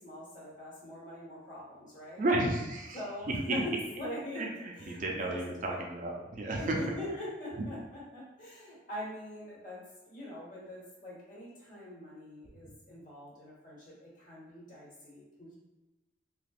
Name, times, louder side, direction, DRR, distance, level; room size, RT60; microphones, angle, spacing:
voice 1, 0.0-2.2 2.9-5.4 5.7-5.8 6.5-15.6, left 1 dB, 45° left, -6 dB, 1.2 m, -43 dB
voice 2, 2.2-3.0 3.3-3.6 4.4-4.5 5.0-6.8, right 2 dB, 45° right, 0 dB, 0.4 m, -32 dB
3.3 x 2.9 x 2.4 m, 1.1 s
head